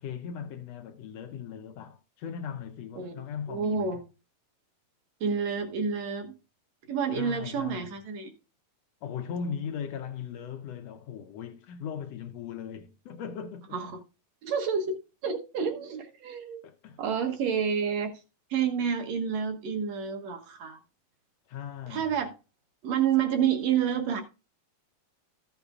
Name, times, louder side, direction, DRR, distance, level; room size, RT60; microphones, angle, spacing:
voice 1, 0.0-4.0 7.1-7.9 9.0-13.8 16.6-17.0 21.5-22.1, left 7 dB, 85° left, 1.4 m, -38 dB
voice 2, 3.5-4.0 5.2-6.4 6.9-8.3 13.7-14.0 14.4-16.6 17.0-18.1 18.5-20.8 21.9-22.3 22.8-24.2, right 7 dB, 60° right, 2.0 m, -29 dB
14.0 x 8.3 x 2.4 m
omnidirectional pair, 3.9 m